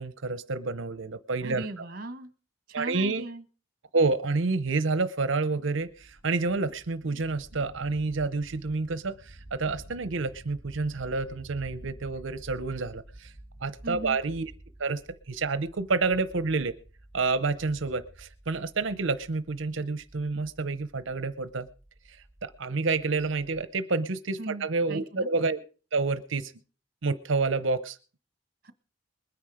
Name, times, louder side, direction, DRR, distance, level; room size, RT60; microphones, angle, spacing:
voice 1, 0.0-1.7 2.7-3.3 3.9-13.3 13.6-14.5 14.8-15.0 15.3-16.8 17.1-21.7 22.1-25.6 25.9-26.5 27.0-28.0, right 3 dB, 70° right, 13 dB, 0.7 m, -29 dB
voice 2, 1.4-2.3 2.7-3.4 13.8-14.2 24.4-25.3 28.6-28.7, right 2 dB, 45° right, 10 dB, 1.4 m, -38 dB
sound 1, 5.9-23.6, right 1 dB, 15° left, 3.8 m, -51 dB
21.0 x 9.5 x 4.9 m, 0.39 s
head